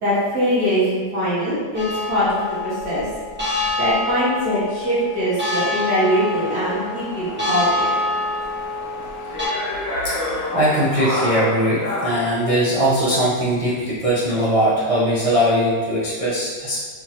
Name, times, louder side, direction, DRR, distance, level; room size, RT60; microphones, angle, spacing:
voice 1, 0.0-3.0 3.8-7.9, equal, 70° right, -10 dB, 2.1 m, -22 dB
sound 1, 1.7-9.4, left 2 dB, 10° right, 1.0 m, -26 dB
sound 2, 6.0-12.3, left 2 dB, 60° left, 1.6 m, -30 dB
voice 2, 10.5-16.8, equal, 45° right, -9 dB, 0.4 m, -20 dB
4.6 x 3.8 x 2.8 m, 1.5 s
omnidirectional pair, 1.8 m